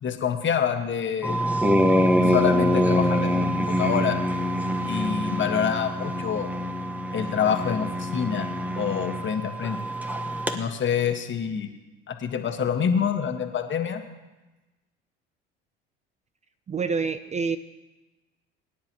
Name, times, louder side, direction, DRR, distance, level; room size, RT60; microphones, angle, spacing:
voice 1, 0.0-1.3 2.3-4.2 4.9-6.5 7.1-9.8 10.5-11.7 12.1-14.0, left 7 dB, 40° left, 5 dB, 1.6 m, -26 dB
sound 1, 1.2-10.6, equal, 5° right, 1.4 m, -25 dB
voice 2, 16.7-17.6, right 5 dB, 25° right, 12 dB, 0.5 m, -27 dB
23.0 x 10.5 x 3.1 m, 1.1 s
hypercardioid pair, 65°, 30 cm